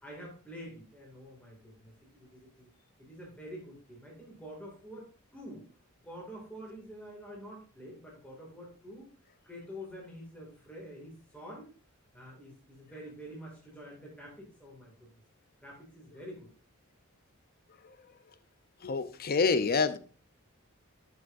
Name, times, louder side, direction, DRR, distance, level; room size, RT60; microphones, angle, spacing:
voice 1, 0.0-2.7 3.0-5.7 6.0-9.1 9.4-11.7 12.1-15.1 15.6-16.5, equal, 5° left, -4 dB, 2.3 m, -47 dB
voice 2, 18.8-20.0, left 4 dB, 45° left, 12 dB, 0.7 m, -27 dB
12.5 x 6.1 x 2.6 m, 0.37 s
head